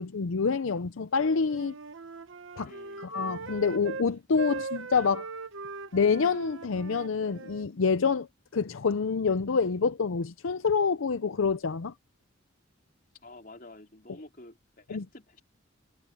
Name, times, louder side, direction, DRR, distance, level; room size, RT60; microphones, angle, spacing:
voice 1, 0.0-1.7 2.6-2.7 3.0-5.3 5.9-8.3 8.5-11.9 14.9-15.0, left 5 dB, 85° left, 0.6 m, -27 dB
Wind instrument woodwind instrument, 1.2-4.1 4.4-7.7, right 4 dB, 75° right, 0.9 m, -40 dB
voice 2, 2.6-3.1 13.2-15.4, left 2 dB, 45° left, 3.8 m, -50 dB
head